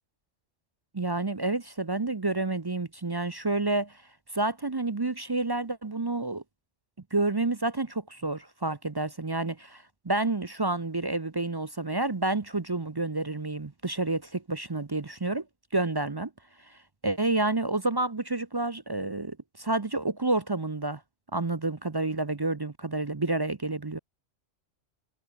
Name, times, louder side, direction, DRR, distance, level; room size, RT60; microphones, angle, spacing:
voice 1, 0.9-3.9 4.3-6.4 7.1-15.4 15.7-16.3 17.0-21.0 21.3-24.0, right 2 dB, 25° right, 0.6 m, -29 dB
omnidirectional pair, 1.2 m